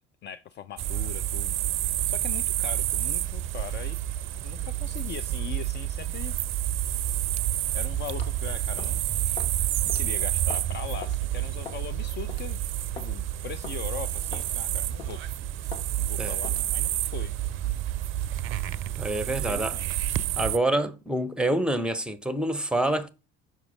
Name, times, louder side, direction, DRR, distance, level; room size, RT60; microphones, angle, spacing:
voice 1, 0.2-1.6 1.9-4.0 4.4-6.4 7.7-12.6 13.0-17.4 17.6-17.8 19.3-20.1, left 10 dB, 35° left, 0.4 m, -41 dB
sound 1, 0.8-20.6, right 13 dB, 40° right, 0.5 m, -29 dB
sound 2, 8.2-8.4 8.8-9.0 9.4-9.6 9.9-10.0 10.5-10.7 11.0-11.2 11.7-11.9 12.3-12.5 13.0-13.1 13.6-13.8 14.3-14.5 15.0-15.2 15.7-15.9 16.4-16.7, left 6 dB, 75° left, 1.0 m, -41 dB
voice 2, 19.0-19.8 20.4-23.1, right 1 dB, 5° right, 0.8 m, -27 dB
6.1 x 5.2 x 3.5 m
figure-of-eight pair, 60°, 32 cm